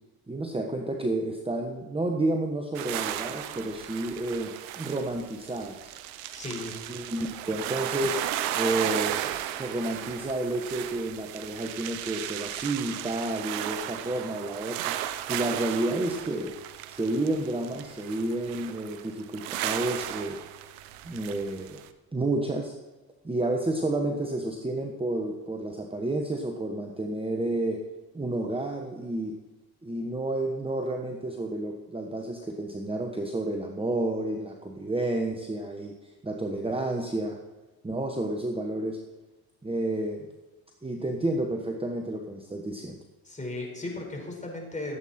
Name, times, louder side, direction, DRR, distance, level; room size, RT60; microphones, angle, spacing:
voice 1, 0.3-5.9 6.9-8.2 8.5-14.9 15.3-16.5 16.9-20.4 21.0-21.8 22.1-22.7 23.2-27.8 28.1-29.3 29.8-37.4 37.8-39.0 39.6-40.3 40.8-43.0, right 2 dB, 15° right, 3 dB, 1.3 m, -30 dB
sound 1, 2.7-21.9, right 12 dB, 85° right, 0.8 m, -35 dB
voice 2, 6.3-6.8 43.2-45.0, left 2 dB, 20° left, 0 dB, 4.8 m, -36 dB
15.0 x 8.3 x 4.4 m, 1.1 s
supercardioid pair, 65°, 41 cm